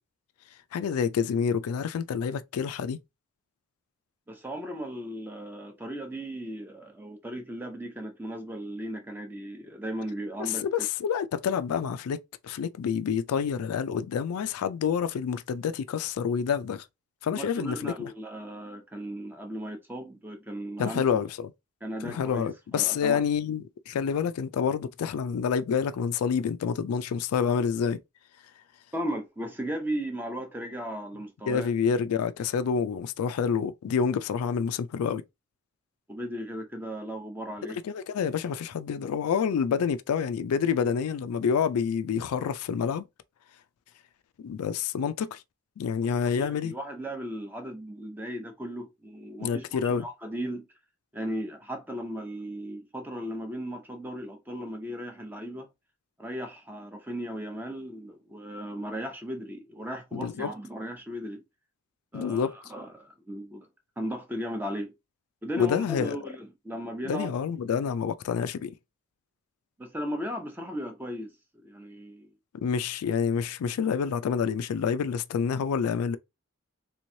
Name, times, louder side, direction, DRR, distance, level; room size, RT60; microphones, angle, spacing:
voice 1, 0.7-3.0 10.4-12.2 12.4-16.8 17.2-18.1 20.8-21.5 22.0-28.0 31.5-35.2 37.8-43.0 44.4-45.4 45.8-46.7 49.4-50.0 60.1-60.5 62.1-62.5 65.6-66.2 67.0-68.7 72.5-76.2, left 6 dB, 90° left, 0.3 m, -28 dB
voice 2, 4.3-10.6 17.3-21.2 21.8-23.2 28.9-31.7 36.1-37.8 46.4-50.7 51.1-55.7 56.2-61.4 62.1-63.7 64.0-64.9 65.4-67.3 69.8-71.3 71.6-72.3, equal, 10° right, 0.6 m, -36 dB
3.4 x 3.1 x 2.6 m
head